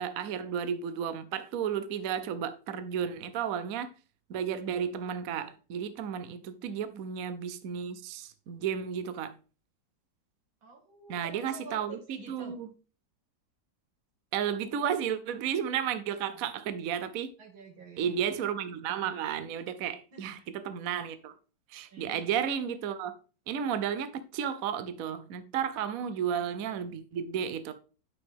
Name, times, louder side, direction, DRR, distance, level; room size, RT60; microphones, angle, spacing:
voice 1, 0.0-3.9 4.3-9.4 11.1-12.7 14.3-17.3 18.0-21.3 21.7-23.1 23.5-27.7, right 8 dB, 60° right, 1.0 m, -33 dB
voice 2, 6.6-7.0 10.6-12.5 16.1-16.4 17.4-18.2 20.1-20.4 21.8-22.2 25.8-26.1, right 4 dB, 85° right, 3.1 m, -49 dB
9.2 x 6.1 x 3.6 m
omnidirectional pair, 2.1 m